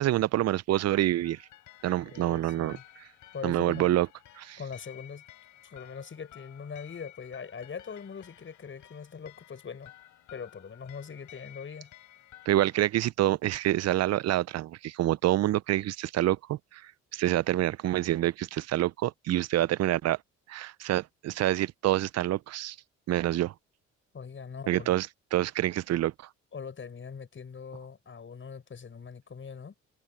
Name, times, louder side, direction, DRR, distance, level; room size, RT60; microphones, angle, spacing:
voice 1, 0.0-1.4 1.8-3.0 3.4-4.1 4.4-4.6 12.5-20.2 20.5-22.8 23.1-23.5 24.7-26.3, right 14 dB, 60° right, 0.5 m, -27 dB
sound 1, 1.2-12.9, left 13 dB, 80° left, 5.4 m, -54 dB
voice 2, 2.1-2.8 3.3-3.9 4.6-5.2 5.6-9.9 10.3-11.9 24.1-25.0 26.5-29.7, left 6 dB, 40° left, 6.0 m, -42 dB
cardioid pair, 90°, 30 cm